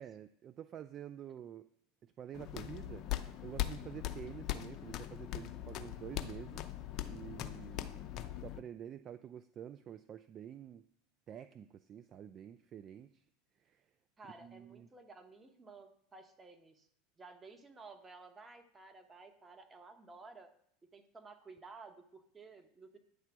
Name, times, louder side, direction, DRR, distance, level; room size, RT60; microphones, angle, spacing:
voice 1, 0.0-1.7 2.0-3.1 3.4-6.7 7.1-8.0 8.4-10.9 11.3-13.2 13.6-13.8 14.4-14.9, right 9 dB, 40° right, 12 dB, 0.3 m, -48 dB
sound 1, 2.3-8.6, left 13 dB, 50° left, 0.6 m, -41 dB
voice 2, 14.2-16.9 17.2-20.5 20.9-23.0, right 3 dB, 20° right, 7 dB, 1.1 m, -54 dB
9.2 x 3.4 x 6.0 m, 0.70 s
hypercardioid pair, 90°, 0 cm